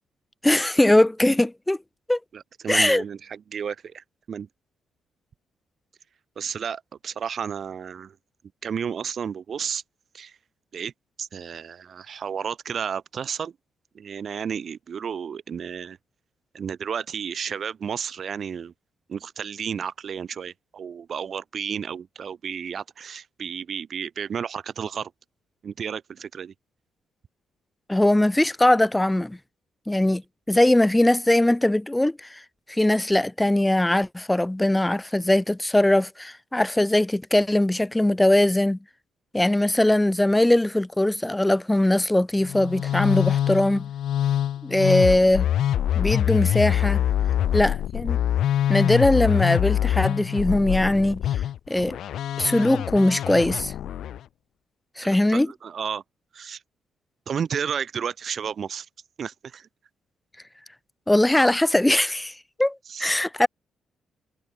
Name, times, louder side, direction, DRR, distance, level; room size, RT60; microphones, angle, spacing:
voice 1, 0.4-1.8 2.1-2.2 2.7-3.0 27.9-29.4 29.9-30.2 30.5-32.4 32.7-38.8 39.3-43.8 44.6-45.5 45.9-47.0 47.5-48.2 48.7-51.2 51.7-52.0 52.4-53.7 55.0-55.5 61.1-62.3 62.6-63.5, left 1 dB, 10° left, 3.7 m, -20 dB
voice 2, 2.3-4.5 6.4-8.1 8.6-9.8 10.1-10.3 10.7-10.9 11.2-13.5 13.9-16.0 16.5-18.7 19.1-25.1 25.6-26.5 55.0-56.0 56.3-56.6 57.3-58.9 59.2-59.7 62.9-63.1, right 7 dB, 50° right, 3.2 m, -32 dB
Musical instrument, 42.4-54.2, left 11 dB, 70° left, 0.8 m, -25 dB
cardioid pair, 90°, 0 cm